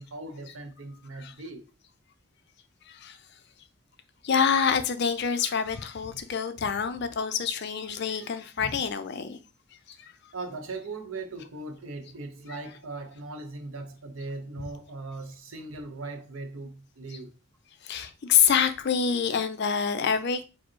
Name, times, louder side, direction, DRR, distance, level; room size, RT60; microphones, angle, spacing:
voice 1, 0.0-1.6 10.3-17.3, right 3 dB, 70° right, 0.8 m, -39 dB
voice 2, 2.9-3.2 4.2-9.4 9.9-10.1 14.6-14.7 17.8-20.4, left 7 dB, 50° left, 0.4 m, -26 dB
4.9 x 2.0 x 4.5 m
head